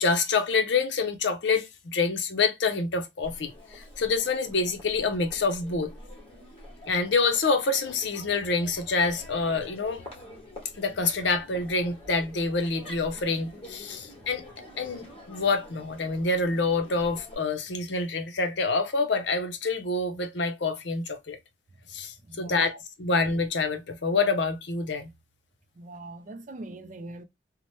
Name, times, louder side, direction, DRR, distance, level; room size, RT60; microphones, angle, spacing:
voice 1, 0.0-5.9 6.9-10.0 10.8-21.4 21.9-25.1, left 4 dB, 70° left, 0.6 m, -27 dB
Crowd, 3.2-17.3, left 1 dB, 30° left, 1.2 m, -47 dB
voice 2, 22.3-22.8 25.8-27.2, right 2 dB, 40° right, 0.4 m, -41 dB
2.8 x 2.1 x 2.9 m
head